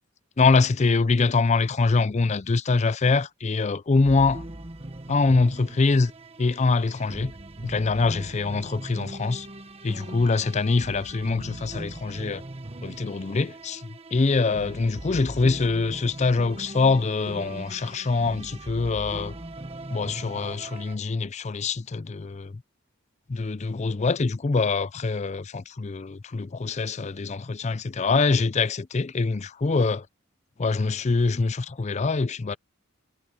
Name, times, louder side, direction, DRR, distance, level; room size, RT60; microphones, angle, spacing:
voice 1, 0.4-4.4 5.1-6.1 6.4-7.3 7.6-9.5 9.8-12.4 12.8-19.4 19.9-22.5 23.3-30.1 30.6-32.6, left 3 dB, 30° left, 0.4 m, -24 dB
sound 1, 4.0-21.0, right 1 dB, 30° right, 1.2 m, -40 dB
head